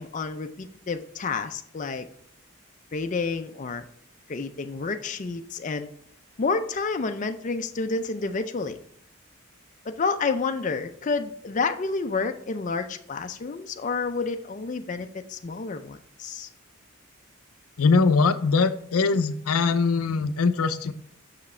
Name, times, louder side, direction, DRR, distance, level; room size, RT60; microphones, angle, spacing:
voice 1, 0.0-2.1 2.9-3.8 4.3-5.9 6.4-8.8 9.9-16.5, left 4 dB, 35° left, 7 dB, 0.4 m, -29 dB
voice 2, 17.8-20.9, left 4 dB, 90° left, 11 dB, 0.5 m, -22 dB
6.4 x 5.9 x 3.2 m, 0.66 s
head